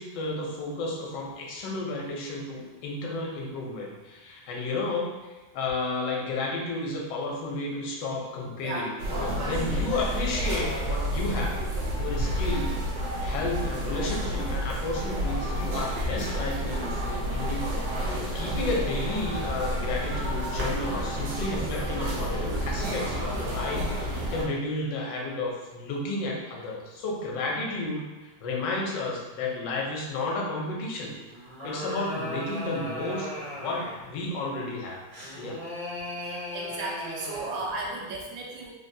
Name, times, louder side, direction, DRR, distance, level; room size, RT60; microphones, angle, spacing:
voice 1, 0.0-5.1 5.5-11.5 12.0-12.7 13.2-28.0 28.4-31.1 31.6-35.0 35.4-35.6, left 2 dB, 70° left, -1 dB, 1.2 m, -32 dB
sound 1, 9.0-24.4, equal, 65° right, 1.1 m, -30 dB
sound 2, 31.3-34.1 35.1-37.7, equal, 45° right, 0.6 m, -37 dB
voice 2, 36.2-38.7, right 2 dB, 90° right, -2 dB, 1.4 m, -35 dB
3.5 x 2.2 x 2.6 m, 1.1 s
omnidirectional pair, 2.1 m